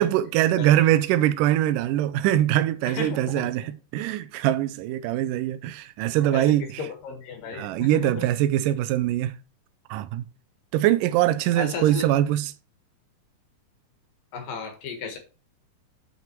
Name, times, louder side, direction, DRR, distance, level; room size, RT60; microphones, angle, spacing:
voice 1, 0.0-6.9 7.5-9.4 9.9-10.2 10.7-12.5, right 13 dB, 85° right, 2.2 m, -23 dB
voice 2, 2.9-3.5 6.3-8.3 11.6-12.1 14.3-15.2, left 4 dB, 85° left, 3.4 m, -34 dB
7.2 x 5.9 x 4.5 m
omnidirectional pair, 3.8 m